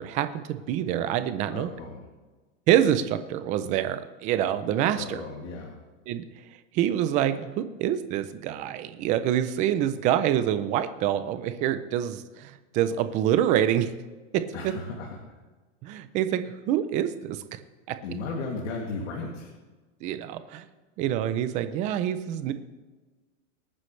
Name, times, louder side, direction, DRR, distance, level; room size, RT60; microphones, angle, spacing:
voice 1, 0.0-1.7 2.7-5.2 6.1-6.2 6.7-13.9 14.6-14.7 15.8-17.6 17.9-18.0 20.0-20.7 21.0-22.5, right 11 dB, 20° right, 11 dB, 0.5 m, -26 dB
voice 2, 1.5-2.0 4.9-5.8 14.5-15.3 18.0-19.5, left 3 dB, 75° left, -1 dB, 2.7 m, -35 dB
24.5 x 9.6 x 3.3 m, 1.3 s
supercardioid pair, 170°, 37 cm